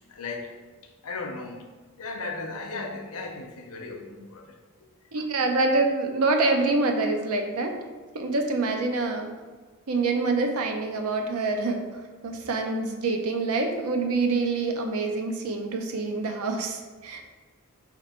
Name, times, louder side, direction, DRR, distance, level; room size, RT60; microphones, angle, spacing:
voice 1, 0.1-0.5 1.0-1.7 2.0-4.4, left 3 dB, 85° left, 3 dB, 0.6 m, -36 dB
voice 2, 5.1-7.8 8.1-9.3 9.9-11.9 12.2-17.2, right 3 dB, 85° right, 4 dB, 0.6 m, -26 dB
4.4 x 2.5 x 4.2 m, 1.4 s
head